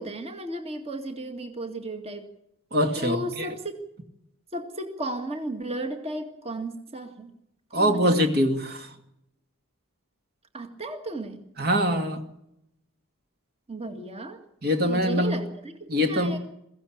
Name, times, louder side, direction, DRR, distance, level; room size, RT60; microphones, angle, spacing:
voice 1, 0.0-2.3 3.0-3.6 4.5-7.3 7.8-8.1 10.5-11.4 13.7-14.4 14.8-16.4, right 1 dB, 30° right, 2.1 m, -34 dB
voice 2, 2.7-3.5 7.7-8.9 11.6-12.2 14.6-15.4 15.9-16.4, equal, 50° right, 2.3 m, -23 dB
22.5 x 16.0 x 8.7 m
head